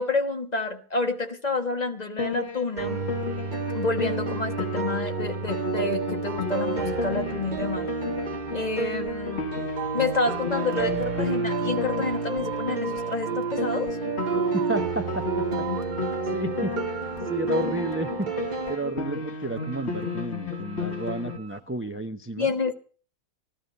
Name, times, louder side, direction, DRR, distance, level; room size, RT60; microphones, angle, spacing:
voice 1, 0.0-3.0 3.7-7.9 8.5-9.5 9.9-14.0 22.4-22.7, left 3 dB, 30° left, 6 dB, 1.3 m, -29 dB
Piano, 2.2-21.4, left 3 dB, 45° left, 1.9 m, -33 dB
sound 1, 2.8-18.8, right 5 dB, 40° right, 0.8 m, -31 dB
sound 2, 9.7-12.2 12.5-13.5 13.9-14.9 15.1-16.2 16.6-17.6 17.8-19.1 19.6-21.6, right 15 dB, 65° right, 1.7 m, -40 dB
voice 2, 14.5-15.2 16.3-16.7 17.2-18.3 18.7-22.5, right 1 dB, 20° right, 7 dB, 0.3 m, -31 dB
14.5 x 13.5 x 5.3 m, 0.42 s
omnidirectional pair, 1.6 m